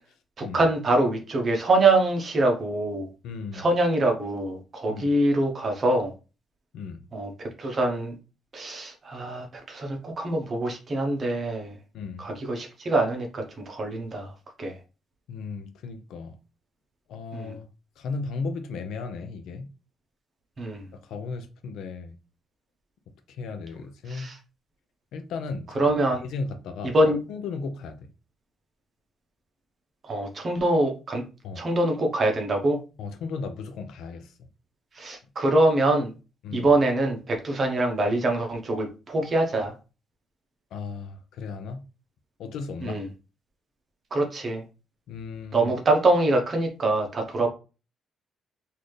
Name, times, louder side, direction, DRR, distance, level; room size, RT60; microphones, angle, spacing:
voice 1, 0.4-3.1 3.5-6.1 7.1-8.1 8.5-11.8 12.2-14.8 17.3-17.5 20.6-20.9 24.1-24.4 25.7-26.2 26.8-27.2 30.0-31.2 31.6-32.8 34.9-36.1 36.5-39.7 42.8-43.0 44.1-44.6 45.5-47.5, right 2 dB, 30° right, 1.0 m, -24 dB
voice 2, 3.2-3.7 4.9-5.1 6.7-7.0 11.9-12.3 15.3-16.4 17.1-17.7 18.0-19.7 20.9-22.1 23.3-24.3 25.1-25.9 26.2-26.9 27.3-28.1 31.4-31.6 33.0-34.5 36.4-36.7 40.7-41.8 42.4-43.0 45.1-45.7, left 4 dB, 80° left, 0.6 m, -35 dB
4.1 x 2.7 x 3.2 m
cardioid pair, 160°, 0 cm